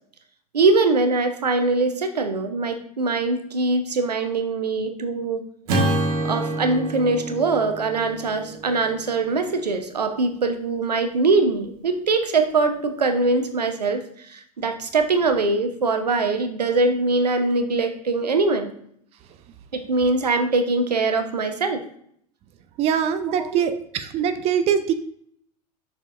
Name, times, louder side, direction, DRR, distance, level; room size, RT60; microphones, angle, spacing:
voice 1, 0.5-5.4 6.2-18.7 19.7-21.8 23.4-23.6, right 3 dB, 80° right, 8 dB, 0.8 m, -22 dB
Acoustic guitar / Strum, 5.7-10.1, right 1 dB, 60° right, 1.6 m, -28 dB
voice 2, 22.8-24.9, right 8 dB, 30° right, 10 dB, 0.5 m, -23 dB
7.3 x 6.0 x 2.5 m, 0.66 s
figure-of-eight pair, 85°, 21 cm